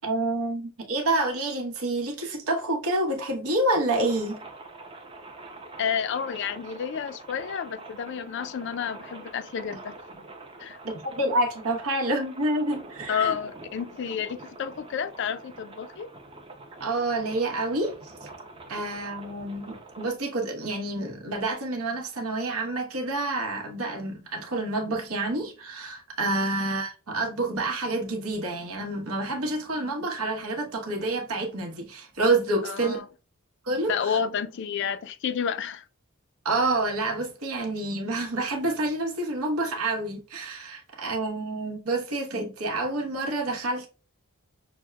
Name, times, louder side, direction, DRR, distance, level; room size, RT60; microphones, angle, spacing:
voice 1, 0.0-4.4 10.8-13.4 16.8-17.9 18.2-18.3 18.7-33.0 33.6-34.2 36.4-43.9, right 2 dB, 80° right, 1.0 m, -28 dB
sound 1, 3.9-20.1, right 2 dB, 25° right, 0.5 m, -45 dB
voice 2, 5.8-10.0 10.6-10.8 13.1-16.1 32.6-33.1 33.9-35.8, left 7 dB, 55° left, 0.3 m, -30 dB
6.1 x 2.1 x 2.3 m
head